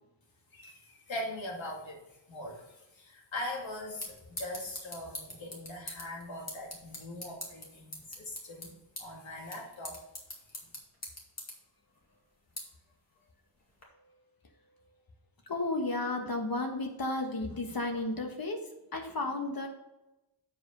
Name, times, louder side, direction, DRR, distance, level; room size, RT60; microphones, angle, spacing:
voice 1, 1.1-8.7 9.0-10.0, left 1 dB, 85° left, -1 dB, 2.2 m, -41 dB
sound 1, 3.4-13.8, left 1 dB, 35° left, 2.2 m, -46 dB
voice 2, 15.5-18.6 18.9-19.7, left 2 dB, 50° left, 4 dB, 1.5 m, -33 dB
7.9 x 5.2 x 5.3 m, 0.97 s
wide cardioid pair, 120°, 45 cm